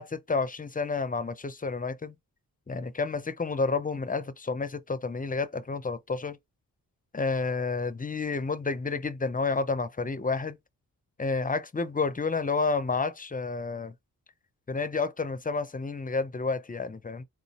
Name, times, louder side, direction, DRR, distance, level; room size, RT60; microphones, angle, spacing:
voice 1, 0.0-2.2 2.7-6.4 7.1-10.6 11.2-13.9 14.7-17.2, left 4 dB, 20° left, 0.6 m, -30 dB
4.0 x 2.3 x 4.1 m
cardioid pair, 60°, 37 cm